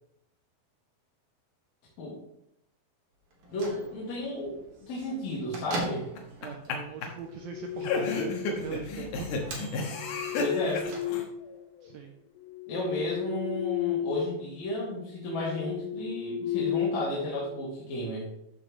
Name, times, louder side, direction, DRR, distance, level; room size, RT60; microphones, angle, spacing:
Bell / Microwave oven, 3.3-11.6, right 2 dB, 55° right, 2.6 m, -43 dB
voice 1, 3.5-6.1 10.4-10.9 12.7-18.3, left 1 dB, 50° left, -6 dB, 2.9 m, -33 dB
sound 1, 6.2-6.7 7.0-7.1 7.8-11.2, left 3 dB, 65° left, 2.4 m, -32 dB
voice 2, 6.4-9.4 11.8-12.2, right 7 dB, 85° right, 3 dB, 2.1 m, -40 dB
sound 2, 7.3-8.8 9.8-11.9 12.4-14.2 14.5-14.8 15.3-17.6, left 10 dB, 85° left, 2.1 m, -34 dB
14.0 x 6.3 x 3.1 m, 0.78 s
omnidirectional pair, 5.0 m